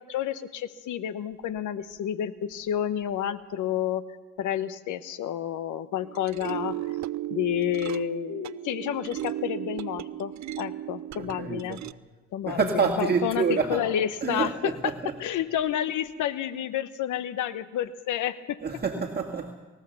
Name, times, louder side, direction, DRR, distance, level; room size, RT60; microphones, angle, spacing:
voice 1, 0.0-4.0 4.4-6.8 7.3-11.8 12.3-14.9 15.2-18.6, left 11 dB, 80° left, 13 dB, 1.0 m, -30 dB
sound 1, 6.0-11.9, right 13 dB, 65° right, 0.7 m, -35 dB
voice 2, 11.2-11.8 12.5-13.8 14.2-15.1 18.6-19.5, right 5 dB, 35° right, 0 dB, 1.9 m, -27 dB
24.0 x 15.5 x 7.0 m, 1.2 s
cardioid pair, 90°, 30 cm